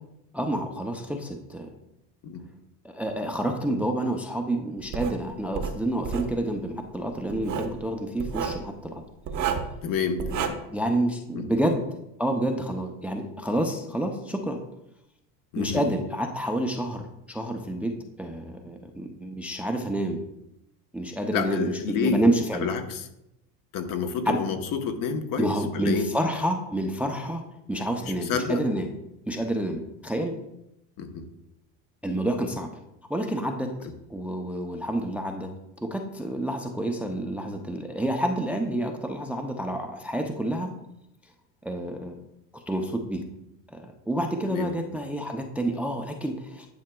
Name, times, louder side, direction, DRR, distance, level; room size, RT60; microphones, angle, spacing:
voice 1, 0.3-1.7 2.8-9.0 10.7-11.8 12.2-14.6 15.6-20.2 20.9-22.7 24.3-24.4 25.4-27.4 27.7-28.9 29.3-30.3 32.0-32.7 33.1-33.7 34.1-35.5 35.8-40.7 41.6-42.2 42.5-43.2 43.7-46.7, right 1 dB, 5° right, 3 dB, 0.5 m, -28 dB
Writing, 4.9-5.2 5.5-6.3 7.3-7.8 8.2-8.6 9.3-9.7 10.2-10.5, right 7 dB, 45° right, 0.9 m, -30 dB
voice 2, 9.8-10.6 11.3-11.4 15.5-15.9 21.3-22.2 22.5-23.1 23.7-26.1 28.0-28.6 31.0-31.3 33.8-33.9 44.5-44.7, left 6 dB, 50° left, 7 dB, 1.0 m, -29 dB
10.5 x 5.6 x 2.3 m, 0.85 s
supercardioid pair, 105°, 42 cm